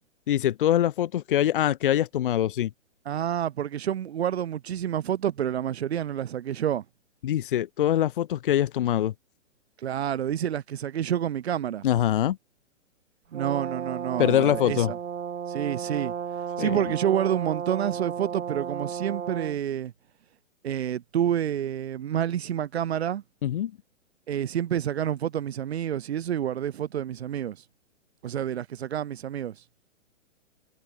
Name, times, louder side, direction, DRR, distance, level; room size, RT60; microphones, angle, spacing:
voice 1, 0.3-2.7 7.2-9.1 11.8-12.4 14.2-14.9 16.6-16.8 23.4-23.7, left 11 dB, 45° left, 1.2 m, -23 dB
voice 2, 3.0-6.8 9.8-11.8 13.3-15.0 15.5-16.1 16.6-19.9 20.6-23.2 24.3-27.6 28.2-29.6, right 10 dB, 55° right, 1.5 m, -28 dB
Brass instrument, 13.3-19.6, right 8 dB, 75° right, 3.7 m, -34 dB
hypercardioid pair, 165°, 38 cm